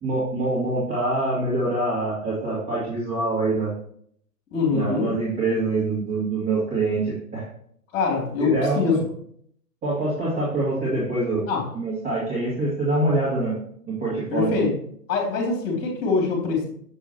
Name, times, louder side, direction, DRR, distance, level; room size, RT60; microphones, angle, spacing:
voice 1, 0.0-3.7 4.7-7.5 8.4-9.0 9.8-11.4 11.7-13.6 13.9-14.6, right 2 dB, 20° right, -8 dB, 2.1 m, -25 dB
voice 2, 4.5-5.1 7.9-9.0 11.5-11.6 14.3-14.8 15.1-16.7, left 4 dB, 25° left, 0 dB, 2.6 m, -23 dB
7.2 x 6.9 x 2.9 m, 0.65 s
hypercardioid pair, 130°, 48 cm